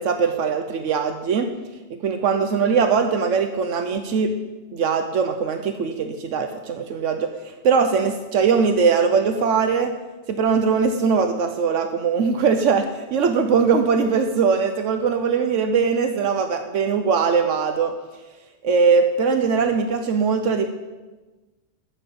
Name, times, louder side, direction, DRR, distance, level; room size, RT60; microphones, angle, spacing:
voice 1, 0.0-1.5 1.9-4.3 4.7-9.9 10.3-17.9 18.6-20.7, right 5 dB, 80° right, 7 dB, 1.1 m, -21 dB
9.9 x 7.3 x 6.9 m, 1.2 s
omnidirectional pair, 1.3 m